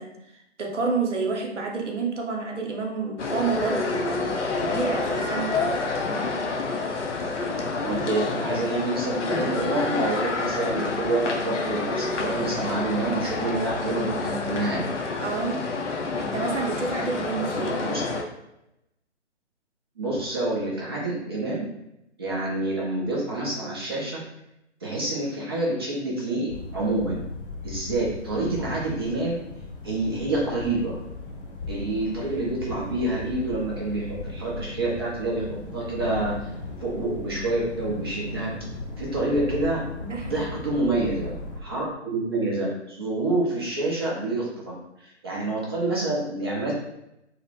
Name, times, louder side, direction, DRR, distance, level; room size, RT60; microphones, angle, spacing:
voice 1, 0.0-5.6 15.2-15.7 16.2-17.8 39.9-40.5, right 4 dB, 80° right, 2 dB, 0.7 m, -29 dB
sound 1, 3.2-18.2, left 3 dB, 75° left, 0.6 m, -28 dB
voice 2, 7.8-14.8 17.8-18.2 20.0-21.6 22.2-24.2 24.8-27.2 27.6-29.4 29.8-31.0 31.7-36.5 36.8-38.5 39.0-39.8 40.1-41.3 41.6-44.7 45.0-46.7, right 2 dB, 20° right, -5 dB, 0.5 m, -27 dB
sound 2, 26.5-41.6, left 2 dB, 45° left, 0.8 m, -37 dB
2.8 x 2.0 x 3.0 m, 0.87 s
figure-of-eight pair, 140°, 36 cm